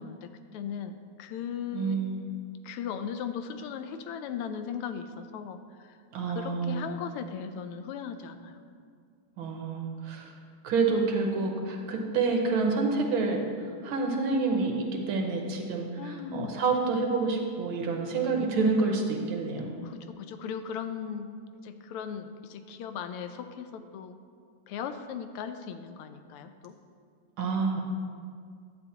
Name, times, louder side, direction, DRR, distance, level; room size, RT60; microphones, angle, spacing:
voice 1, 0.0-2.0 2.6-6.0 6.3-8.6 16.0-16.5 19.8-21.3 21.6-24.2 24.7-26.8, left 7 dB, 85° left, 9 dB, 1.5 m, -38 dB
voice 2, 1.7-2.2 6.1-6.9 9.4-10.3 10.6-13.4 13.8-19.8 27.4-27.8, right 4 dB, 70° right, 2 dB, 1.8 m, -28 dB
10.5 x 8.9 x 2.9 m, 2.2 s
omnidirectional pair, 2.4 m